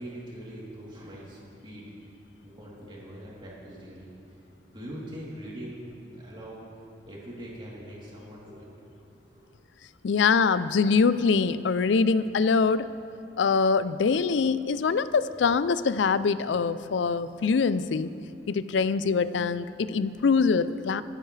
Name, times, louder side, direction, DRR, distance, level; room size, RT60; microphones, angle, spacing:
voice 1, 0.0-1.8 2.4-4.1 4.6-6.6 7.1-8.7 9.3-9.5, right 1 dB, 30° right, -6 dB, 3.2 m, -42 dB
voice 2, 10.0-12.9 13.4-18.1 18.5-21.0, left 5 dB, 80° left, 15 dB, 0.4 m, -24 dB
25.5 x 9.3 x 3.3 m, 2.7 s
head